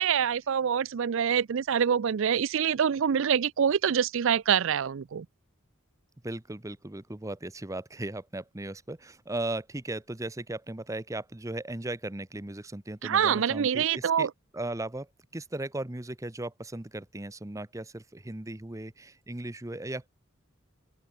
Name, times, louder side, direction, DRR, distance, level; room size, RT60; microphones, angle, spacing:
voice 1, 0.0-5.3 13.0-14.3, right 8 dB, 60° right, 0.4 m, -25 dB
voice 2, 6.2-14.3 14.5-15.1 15.3-20.1, right 2 dB, 15° right, 0.8 m, -37 dB
open air
head